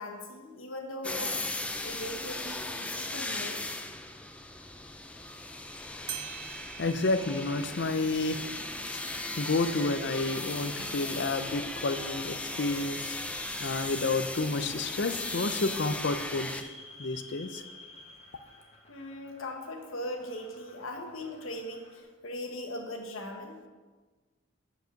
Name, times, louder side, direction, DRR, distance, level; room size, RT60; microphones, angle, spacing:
voice 1, 0.0-1.5 1.8-3.6 18.9-23.7, left 1 dB, 75° left, 3 dB, 1.3 m, -39 dB
sound 1, 1.0-16.6, left 2 dB, 5° left, 0.4 m, -37 dB
sound 2, 5.8-5.9 6.1-11.2, right 10 dB, 50° right, 0.7 m, -47 dB
voice 2, 6.0-8.5 8.9-16.6 17.0-17.6, left 3 dB, 55° left, 9 dB, 0.6 m, -31 dB
sound 3, 10.0-22.0, left 2 dB, 30° left, 1.3 m, -51 dB
9.4 x 4.9 x 6.4 m, 1.4 s
head